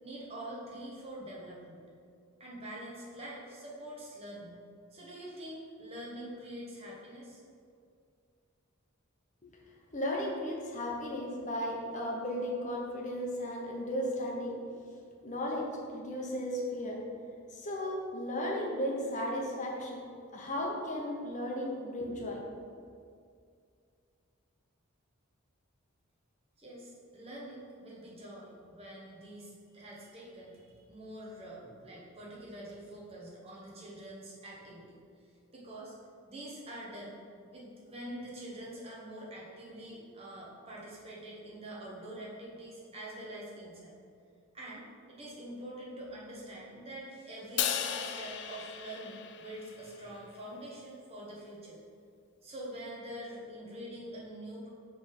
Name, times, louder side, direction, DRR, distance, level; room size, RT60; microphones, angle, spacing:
voice 1, 0.0-1.9 2.4-4.6 4.9-7.4 26.6-35.0 35.5-35.9 36.2-37.2 37.5-43.9 44.5-51.8 52.4-54.7, right 1 dB, 30° right, -5 dB, 1.2 m, -45 dB
voice 2, 9.9-14.6 15.2-15.7 15.9-17.0 17.5-20.0 20.3-22.4, equal, 35° left, -2 dB, 0.9 m, -35 dB
Crash cymbal, 47.6-50.0, left 9 dB, 50° left, 0.3 m, -35 dB
5.0 x 3.5 x 5.4 m, 2.3 s
head